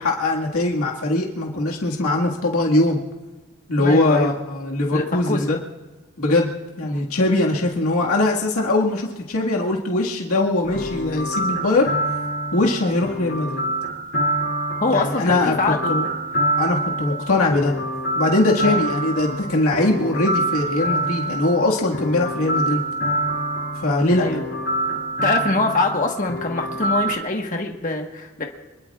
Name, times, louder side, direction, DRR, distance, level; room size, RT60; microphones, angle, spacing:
voice 1, 0.0-3.0 3.7-5.6 6.2-6.5 6.8-11.9 12.5-13.6 14.9-15.6 15.9-16.1 16.6-17.7 18.2-22.8 23.8-24.3, left 2 dB, 85° left, -2 dB, 1.9 m, -21 dB
voice 2, 3.8-4.3 4.9-5.5 6.9-7.0 14.8-16.1 18.6-18.8 24.2-24.4 25.2-28.5, left 2 dB, 35° left, 1 dB, 1.4 m, -24 dB
sound 1, 10.6-27.2, right 1 dB, 55° left, 3.2 m, -26 dB
27.0 x 20.5 x 2.4 m, 1.2 s
head